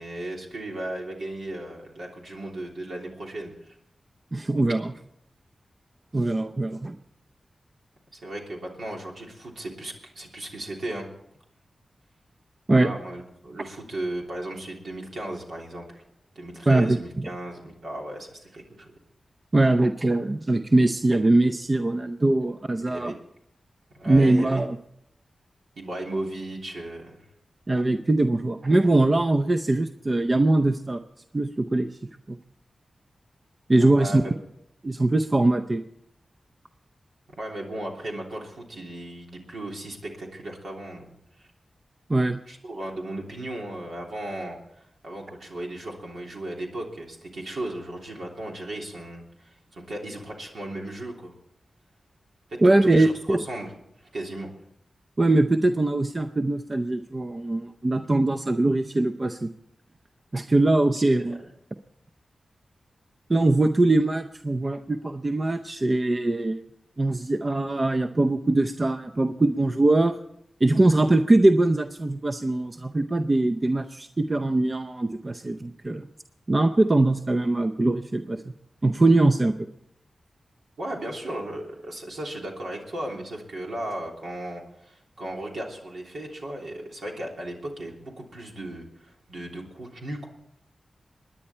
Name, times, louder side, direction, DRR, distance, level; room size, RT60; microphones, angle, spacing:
voice 1, 0.0-3.7 8.1-11.1 12.7-16.0 16.3-18.9 22.8-23.2 23.9-24.6 25.8-27.2 34.0-34.2 37.3-41.1 41.4-41.5 42.5-51.3 52.6-53.7 54.1-54.5 60.9-61.0 61.3-61.4 80.8-90.3, right 1 dB, 80° right, -1 dB, 3.3 m, -36 dB
voice 2, 4.3-4.9 6.1-7.0 12.7-12.9 16.7-17.3 19.5-23.1 24.1-24.8 27.7-31.0 31.3-31.9 32.3-32.4 33.7-34.2 34.8-35.8 42.1-42.4 52.6-53.4 55.2-59.5 60.3-61.4 63.3-66.6 67.0-70.1 70.6-76.1 76.5-78.5 78.8-79.6, right 2 dB, 40° right, 7 dB, 0.6 m, -22 dB
24.5 x 10.0 x 4.4 m, 0.75 s
cardioid pair, 50°, 0 cm